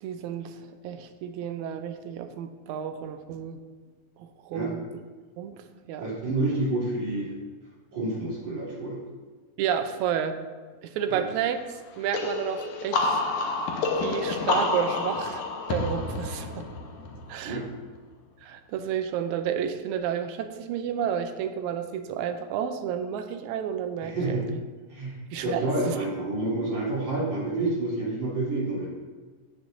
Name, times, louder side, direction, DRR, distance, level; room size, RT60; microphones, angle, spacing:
voice 1, 0.0-0.6 0.8-3.6 4.2-4.8 5.4-5.6 5.9-6.1 9.6-10.4 10.8-11.6 12.0-13.2 14.0-16.7 17.3-17.6 18.4-24.4 25.3-26.0, right 8 dB, 85° right, 8 dB, 2.0 m, -31 dB
voice 2, 6.0-7.3 7.9-9.0 11.1-11.2 17.4-17.6 24.0-24.4 24.9-25.1 25.4-28.9, right 2 dB, 65° right, -7 dB, 4.5 m, -28 dB
sound 1, 12.1-17.7, left 3 dB, 75° left, 2.2 m, -29 dB
16.0 x 6.5 x 2.7 m, 1.4 s
omnidirectional pair, 3.3 m